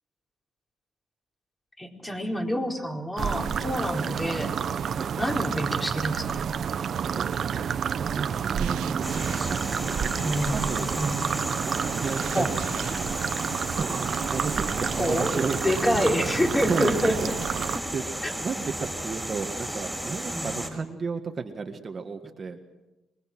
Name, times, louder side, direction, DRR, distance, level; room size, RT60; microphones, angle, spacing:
voice 1, 1.8-4.6 5.2-6.4 8.9-9.0 10.2-10.7 11.0-11.2 12.3-12.5 14.9-17.3 17.7-17.8 18.2-18.3 20.3-20.5, equal, 15° left, 1 dB, 4.4 m, -27 dB
sound 1, 3.2-17.8, right 7 dB, 60° right, 1.0 m, -29 dB
voice 2, 8.0-12.6 12.9-13.2 13.7-16.0 16.6-17.3 17.9-18.1 18.4-22.6, right 5 dB, 40° right, 5 dB, 1.7 m, -34 dB
sound 2, 8.6-10.6 12.1-13.0, right 11 dB, 85° right, 1.5 m, -45 dB
sound 3, 9.0-20.7, right 1 dB, 5° right, 5.1 m, -34 dB
26.5 x 22.5 x 6.2 m, 1.0 s
cardioid pair, 90°, 0 cm